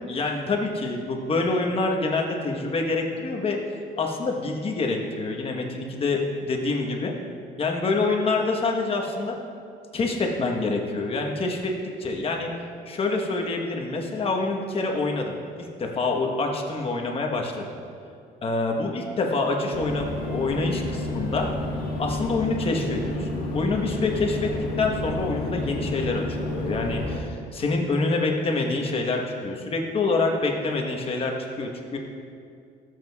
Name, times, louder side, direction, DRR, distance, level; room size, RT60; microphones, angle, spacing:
voice 1, 0.1-3.6 4.0-7.1 7.6-9.4 9.9-11.7 12.0-12.5 12.9-15.4 15.8-17.7 18.4-21.5 22.0-24.5 24.8-32.0, left 3 dB, 35° left, 1 dB, 1.1 m, -26 dB
sound 1, 19.7-27.2, left 2 dB, 60° left, 1.4 m, -30 dB
13.5 x 7.5 x 2.3 m, 2.4 s
cardioid pair, 110°, 17 cm